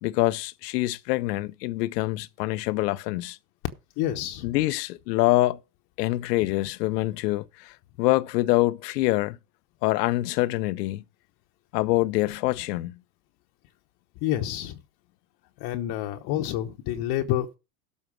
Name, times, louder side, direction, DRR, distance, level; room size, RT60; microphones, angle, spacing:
voice 1, 0.0-3.4 4.4-5.6 6.0-9.4 9.8-11.0 11.7-13.0, left 18 dB, 70° left, 0.8 m, -25 dB
voice 2, 4.0-4.6 14.2-14.8 15.6-17.6, left 12 dB, 50° left, 1.1 m, -28 dB
12.5 x 4.5 x 6.2 m
hypercardioid pair, 100°, 49 cm